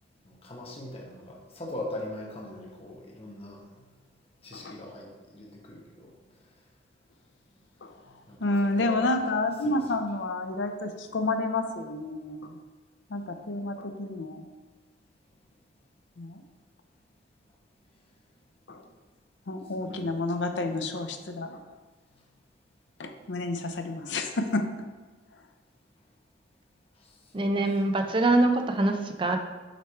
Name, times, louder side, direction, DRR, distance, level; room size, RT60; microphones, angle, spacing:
voice 1, 0.2-3.6 4.4-6.1 8.3-8.5 8.7-9.1 9.6-9.8 19.8-20.1 27.3-27.7, left 1 dB, 35° left, -1 dB, 1.1 m, -41 dB
voice 2, 8.4-12.6 13.1-14.4 16.2-16.4 18.7-18.8 19.5-21.6 23.0-24.9, left 2 dB, 80° left, 6 dB, 0.6 m, -30 dB
voice 3, 27.3-29.4, right 2 dB, 30° right, 5 dB, 0.5 m, -24 dB
6.6 x 3.2 x 4.5 m, 1.3 s
head